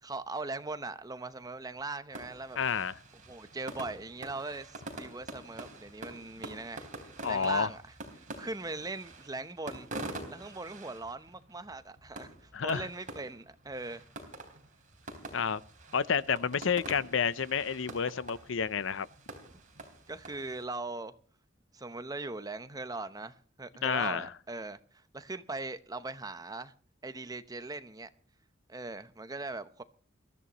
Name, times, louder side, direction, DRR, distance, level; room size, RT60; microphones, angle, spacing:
voice 1, 0.0-2.6 3.3-6.9 7.3-7.8 8.1-9.9 10.3-14.0 19.5-19.6 20.1-21.1 21.7-26.7 27.0-28.1 28.7-29.8, right 3 dB, 20° right, 0.8 m, -40 dB
sound 1, 2.1-20.6, right 2 dB, 40° right, 3.7 m, -46 dB
voice 2, 2.6-2.9 7.2-7.7 12.5-12.8 15.3-15.6 15.9-19.1 23.8-24.3, left 6 dB, 70° left, 0.6 m, -30 dB
22.5 x 14.0 x 3.0 m
head